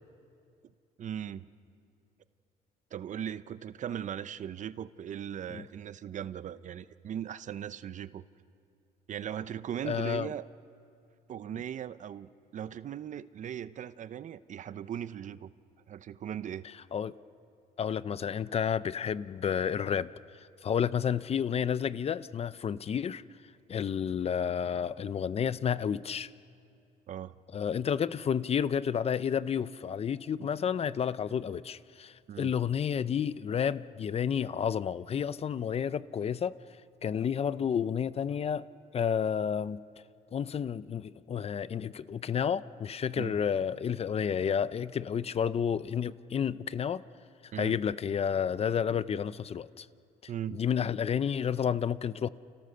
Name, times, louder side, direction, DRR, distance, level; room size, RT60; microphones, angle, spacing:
voice 1, 1.0-1.5 2.9-8.2 9.1-10.5 11.3-15.5 15.9-16.7 27.1-27.4 32.3-32.5 43.2-43.4 47.5-47.8 50.3-50.6, right 9 dB, 45° right, 15 dB, 0.7 m, -38 dB
voice 2, 9.8-10.3 16.9-17.1 17.8-23.2 23.7-26.3 27.5-36.6 37.0-38.6 38.9-39.8 40.3-47.0 47.6-49.9 50.5-52.3, left 8 dB, 35° left, 16 dB, 0.6 m, -31 dB
29.5 x 29.5 x 6.8 m, 2.5 s
cardioid pair, 110°, 17 cm